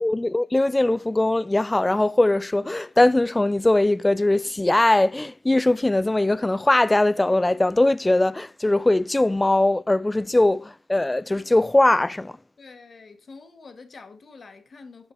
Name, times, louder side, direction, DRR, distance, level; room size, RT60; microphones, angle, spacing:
voice 1, 0.0-12.3, left 2 dB, 15° left, 0.4 m, -20 dB
voice 2, 12.6-15.1, left 4 dB, 45° left, 1.5 m, -46 dB
8.5 x 5.2 x 4.5 m
supercardioid pair, 50°, 0 cm